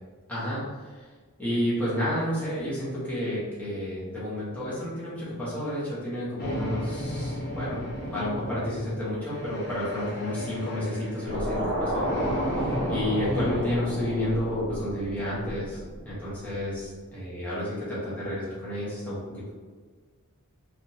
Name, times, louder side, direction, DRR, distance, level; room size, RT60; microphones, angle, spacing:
voice 1, 0.3-0.6 0.9-1.1 1.4-7.8 8.1-12.6 12.9-15.8 16.0-19.5, left 1 dB, 5° left, -10 dB, 1.1 m, -31 dB
sound 1, 6.4-13.6, equal, 45° left, 0.6 m, -34 dB
sound 2, 11.3-16.5, equal, 50° right, 0.8 m, -32 dB
3.7 x 2.4 x 2.8 m, 1.5 s
head